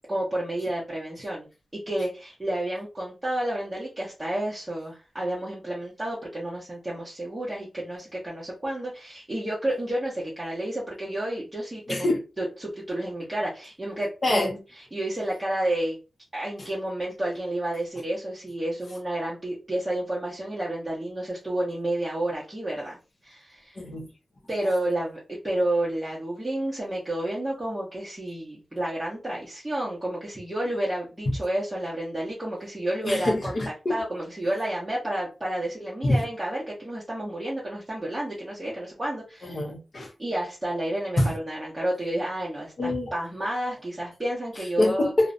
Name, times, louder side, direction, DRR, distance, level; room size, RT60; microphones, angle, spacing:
voice 1, 0.1-1.5 1.7-12.1 12.4-14.6 14.9-16.0 16.3-23.8 24.5-33.6 33.9-39.6 40.2-45.1, right 1 dB, 15° right, 0.7 m, -30 dB
voice 2, 11.9-12.2 14.2-14.5 23.8-24.1 33.0-34.0 36.0-36.2 39.4-40.1 41.2-41.3 42.8-43.1 44.8-45.3, left 1 dB, 45° left, 0.6 m, -25 dB
2.5 x 2.0 x 2.5 m
wide cardioid pair, 135°, 0 cm